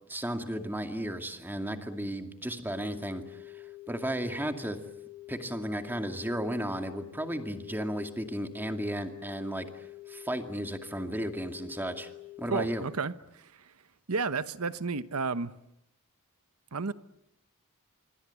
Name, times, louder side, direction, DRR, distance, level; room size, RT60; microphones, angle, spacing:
voice 1, 0.1-4.8 5.3-12.1 12.4-12.8, right 1 dB, 10° right, 2.2 m, -34 dB
sound 1, 2.7-12.7, left 17 dB, 40° right, 7.7 m, -47 dB
voice 2, 12.5-13.7 14.1-15.6 16.7-16.9, right 4 dB, 75° right, 1.0 m, -32 dB
26.0 x 24.5 x 8.3 m
head